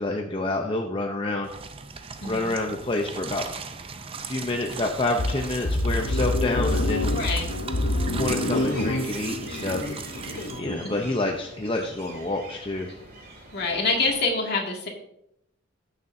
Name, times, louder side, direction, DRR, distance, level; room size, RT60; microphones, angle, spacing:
voice 1, 0.0-1.5 2.2-3.5 4.2-7.1 8.1-10.0 10.6-12.9, left 2 dB, 25° left, 2 dB, 0.7 m, -28 dB
sound 1, 1.4-10.6, right 5 dB, 25° right, 0.5 m, -38 dB
voice 2, 2.2-2.5 7.1-7.5 10.8-11.1 13.5-14.9, left 3 dB, 55° left, 0 dB, 2.2 m, -26 dB
sound 2, 5.2-10.8, left 1 dB, 75° left, 0.9 m, -27 dB
sound 3, 8.5-14.2, right 2 dB, 50° right, 3.3 m, -44 dB
15.0 x 6.7 x 2.7 m, 0.77 s
head